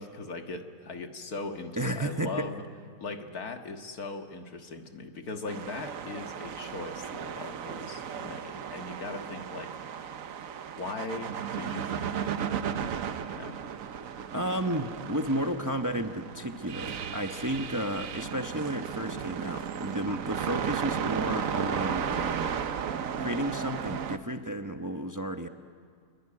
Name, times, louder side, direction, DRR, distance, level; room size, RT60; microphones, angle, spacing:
voice 1, 0.0-2.6 3.0-9.7 10.7-12.8 13.3-13.6, left 3 dB, 85° left, 5 dB, 2.2 m, -39 dB
voice 2, 1.8-2.5 14.3-22.6 23.2-25.5, right 1 dB, 15° right, 6 dB, 0.9 m, -32 dB
sound 1, 5.5-24.2, right 8 dB, 65° right, 1.3 m, -35 dB
27.0 x 23.0 x 9.8 m, 2.1 s
omnidirectional pair, 1.5 m